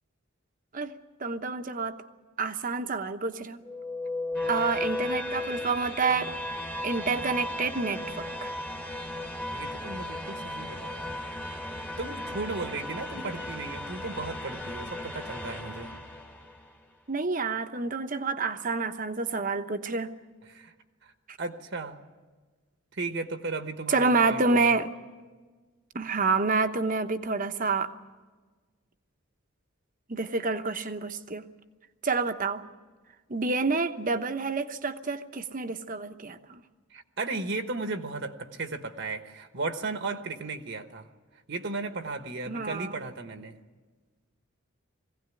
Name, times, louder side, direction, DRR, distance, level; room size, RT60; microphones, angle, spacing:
voice 1, 0.7-1.9 2.4-3.6 4.5-6.3 6.8-8.5 13.2-13.3 17.1-20.1 21.3-21.4 23.9-24.9 25.9-27.9 30.1-31.5 32.0-32.6 33.3-36.6 42.5-43.0, right 4 dB, 40° right, 8 dB, 0.9 m, -28 dB
sound 1, 3.6-16.6, left 1 dB, 10° left, 1.3 m, -35 dB
voice 2, 9.5-11.2 11.7-15.9 20.5-20.7 21.0-21.1 21.4-22.0 22.9-24.7 36.9-41.1 41.5-43.6, right 3 dB, 55° right, 7 dB, 1.2 m, -35 dB
22.0 x 16.5 x 9.7 m, 1.4 s
head